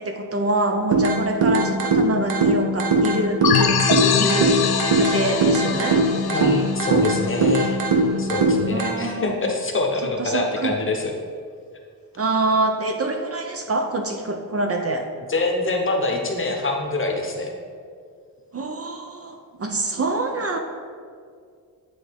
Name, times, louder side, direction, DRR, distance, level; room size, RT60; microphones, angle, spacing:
voice 1, 0.0-3.8 4.2-4.6 4.9-6.0 8.7-9.3 10.2-10.7 12.2-15.1 18.5-20.6, right 2 dB, 40° right, 4 dB, 0.6 m, -25 dB
sound 1, 0.9-8.9, right 2 dB, 65° right, 0.9 m, -21 dB
sound 2, 3.4-7.9, left 7 dB, 70° left, 0.6 m, -24 dB
voice 2, 6.3-7.8 8.2-11.1 15.3-17.5, left 2 dB, 30° left, 1 dB, 0.9 m, -25 dB
9.5 x 3.5 x 3.5 m, 2.1 s
cardioid pair, 100°, 39 cm